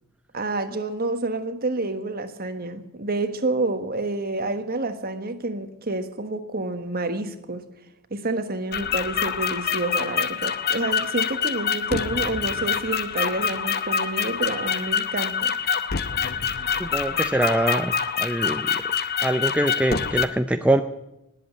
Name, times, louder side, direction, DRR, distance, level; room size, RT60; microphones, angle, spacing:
voice 1, 0.3-7.6 8.1-15.5, right 2 dB, 40° right, 9 dB, 1.4 m, -28 dB
sound 1, 8.7-20.3, left 7 dB, 45° left, 0.8 m, -26 dB
voice 2, 16.8-17.9 18.2-18.7 19.2-20.8, right 1 dB, 5° right, 7 dB, 0.5 m, -23 dB
19.5 x 7.9 x 9.0 m, 0.90 s
head